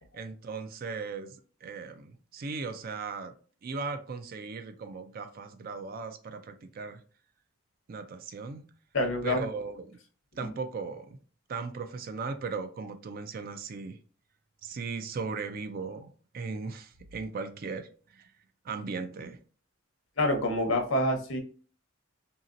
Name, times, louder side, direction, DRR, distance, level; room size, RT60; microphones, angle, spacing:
voice 1, 0.1-3.3 3.6-7.0 7.9-8.6 9.2-10.0 10.4-11.2 11.5-14.0 14.6-18.3 18.6-19.4, right 4 dB, 45° right, 0.3 m, -37 dB
voice 2, 8.9-9.4 10.4-10.5 20.2-21.4, left 1 dB, 70° left, 0.8 m, -27 dB
2.8 x 2.7 x 2.5 m
head